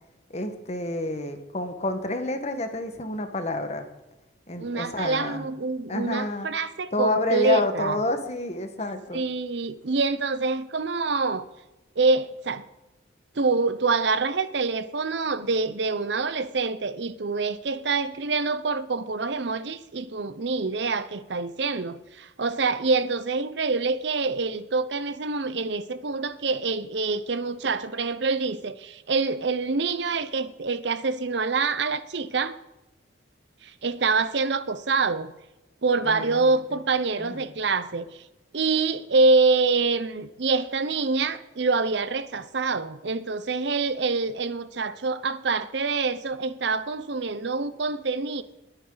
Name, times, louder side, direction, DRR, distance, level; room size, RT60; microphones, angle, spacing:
voice 1, 0.3-3.8 4.5-5.5 5.9-6.5 6.9-9.2 36.0-36.4 37.2-37.4, left 2 dB, 35° left, 1.4 m, -29 dB
voice 2, 4.6-8.0 9.1-11.5 12.0-12.6 13.4-32.5 33.6-35.3 35.8-38.2 38.5-48.4, right 4 dB, 65° right, 0.7 m, -26 dB
20.5 x 9.1 x 3.9 m
head